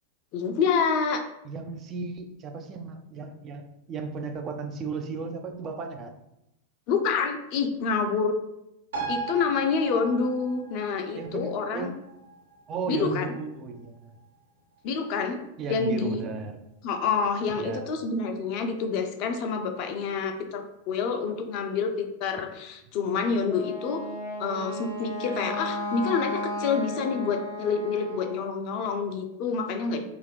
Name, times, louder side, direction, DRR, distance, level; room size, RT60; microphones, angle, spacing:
voice 1, 0.3-1.2 6.9-8.4 9.1-11.9 12.9-13.3 14.8-15.4 15.7-16.3 16.8-24.1 24.4-30.0, left 5 dB, 40° left, 5 dB, 0.4 m, -27 dB
voice 2, 1.4-3.6 3.9-6.2 11.1-11.9 12.7-14.2 15.6-16.6 17.6-17.9, right 4 dB, 30° right, 5 dB, 0.4 m, -35 dB
sound 1, 8.9-15.9 16.2-16.3, right 4 dB, 65° right, 0.9 m, -39 dB
Wind instrument woodwind instrument, 23.4-28.4, left 1 dB, 85° right, 1.2 m, -34 dB
2.5 x 2.4 x 3.3 m, 0.86 s
figure-of-eight pair, 90°, 0 cm